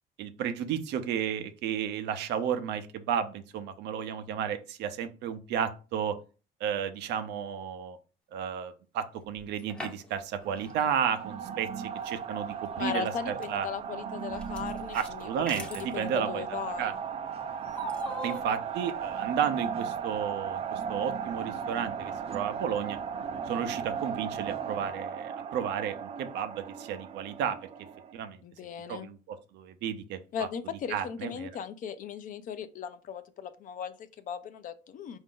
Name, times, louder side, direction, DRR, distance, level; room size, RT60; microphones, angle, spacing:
voice 1, 0.2-6.2 6.6-8.0 8.3-13.7 14.9-16.9 18.2-23.0 23.5-27.6 28.1-28.4 28.9-30.5 30.9-31.5, right 8 dB, 85° right, 9 dB, 0.7 m, -33 dB
sound 1, 9.3-10.3 10.6-10.7 12.1-12.2 12.9-13.5 14.3-15.9 17.8-18.4, right 1 dB, 5° left, 0.7 m, -39 dB
sound 2, 10.4-28.1, right 7 dB, 35° right, 0.4 m, -37 dB
voice 2, 12.8-15.3 15.6-16.9 28.4-29.1 30.3-35.2, left 7 dB, 50° left, 11 dB, 0.6 m, -37 dB
5.0 x 2.6 x 3.7 m, 0.34 s
cardioid pair, 140°, 17 cm